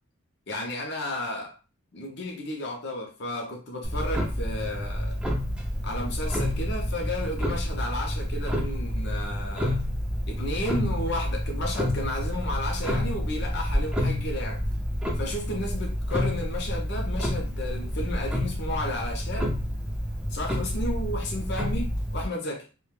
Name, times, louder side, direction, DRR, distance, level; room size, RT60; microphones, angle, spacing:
voice 1, 0.5-1.5 1.9-5.2 5.8-9.8 10.3-14.6 15.2-19.5 20.3-22.7, left 1 dB, 50° left, 0.6 m, -33 dB
Clock, 3.8-22.3, equal, 5° right, 0.4 m, -29 dB
2.3 x 2.2 x 3.1 m
head